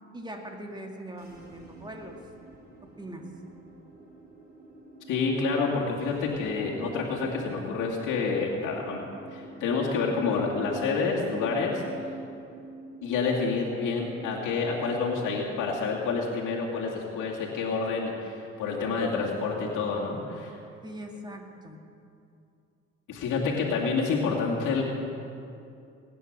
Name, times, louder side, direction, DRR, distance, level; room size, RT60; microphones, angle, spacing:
voice 1, 0.1-2.2 2.8-3.2 20.8-21.8, right 1 dB, 15° right, 2 dB, 2.1 m, -41 dB
sound 1, 1.1-16.6, right 3 dB, 30° right, 3.2 m, -46 dB
voice 2, 5.1-11.8 13.0-18.3 18.6-20.5 23.1-24.8, left 4 dB, 85° left, -3 dB, 2.3 m, -28 dB
20.0 x 9.3 x 6.7 m, 2.6 s
cardioid pair, 90°, 30 cm